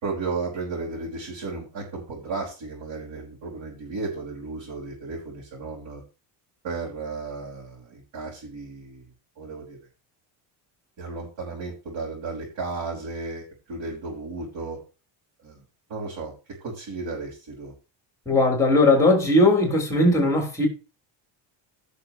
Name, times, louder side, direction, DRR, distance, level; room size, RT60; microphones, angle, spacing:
voice 1, 0.0-6.0 6.6-9.1 9.4-9.8 11.0-14.8 15.4-16.3 16.6-17.7, right 3 dB, 65° right, 5.3 m, -34 dB
voice 2, 18.3-20.7, left 2 dB, 5° left, 3.7 m, -19 dB
16.5 x 6.7 x 3.1 m
cardioid pair, 145°, 47 cm